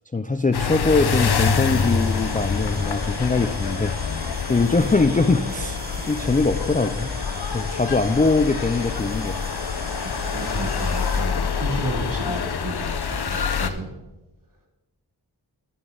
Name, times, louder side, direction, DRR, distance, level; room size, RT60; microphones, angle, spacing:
voice 1, 0.1-3.9 4.2-5.8 6.0-7.1 7.5-9.4, left 3 dB, 20° left, 10 dB, 0.4 m, -22 dB
sound 1, 0.5-13.7, left 6 dB, 65° left, 0.7 m, -26 dB
sound 2, 1.0-11.2, right 1 dB, 20° right, 1.8 m, -38 dB
voice 2, 10.0-14.0, right 1 dB, 50° right, -1 dB, 2.6 m, -32 dB
11.0 x 9.5 x 3.9 m, 0.99 s
wide cardioid pair, 75°, 42 cm